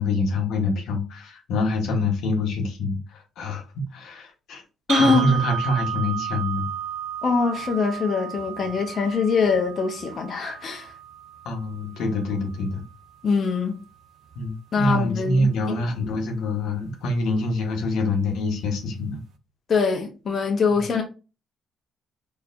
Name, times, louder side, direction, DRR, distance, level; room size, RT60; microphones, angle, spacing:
voice 1, 0.0-4.6 5.0-6.7 11.4-12.8 14.3-19.2 20.7-20.8, left 2 dB, 80° left, 1.1 m, -25 dB
voice 2, 4.9-5.3 7.2-10.9 13.2-13.8 14.7-15.5 19.7-21.0, left 4 dB, 50° left, 1.0 m, -23 dB
sound 1, 4.9-12.9, right 9 dB, 75° right, 0.6 m, -33 dB
4.2 x 3.1 x 2.6 m
cardioid pair, 90°, 0 cm